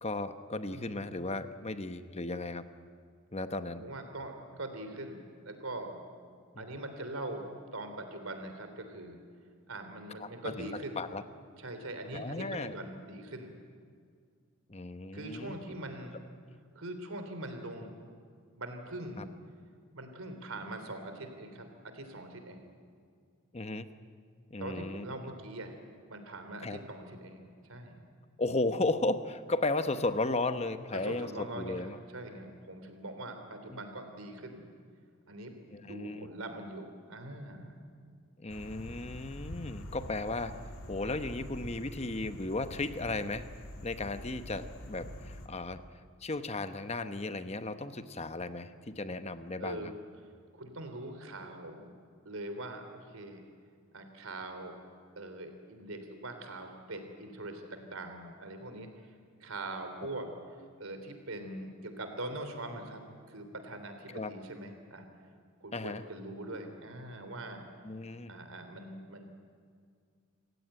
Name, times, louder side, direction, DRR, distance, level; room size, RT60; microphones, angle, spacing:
voice 1, 0.0-2.6 3.3-3.8 6.5-6.6 10.2-10.7 10.9-11.2 12.1-12.7 14.7-15.6 19.2-19.3 23.5-23.9 24.5-25.1 26.6-26.8 28.4-31.3 31.5-32.0 33.7-33.8 35.7-36.3 38.4-40.6 40.9-43.5 43.8-45.8 46.2-49.9 64.1-64.3 65.7-66.0 67.8-68.3, left 2 dB, 30° left, 10 dB, 1.0 m, -35 dB
voice 2, 0.7-1.2 3.7-6.0 6.5-7.5 7.7-9.2 9.7-11.0 11.6-13.5 15.1-16.2 16.7-17.9 18.5-19.2 19.9-22.6 24.6-25.7 26.1-28.0 30.9-34.6 35.3-37.8 49.6-50.0 50.5-51.9 52.2-53.4 53.9-54.7 55.2-59.1 59.4-60.3 60.8-65.1 65.6-67.6 68.3-69.3, right 2 dB, 85° right, 7 dB, 3.4 m, -42 dB
sound 1, 38.5-45.5, left 1 dB, 85° left, 2.3 m, -45 dB
27.5 x 16.0 x 9.1 m, 2.2 s
head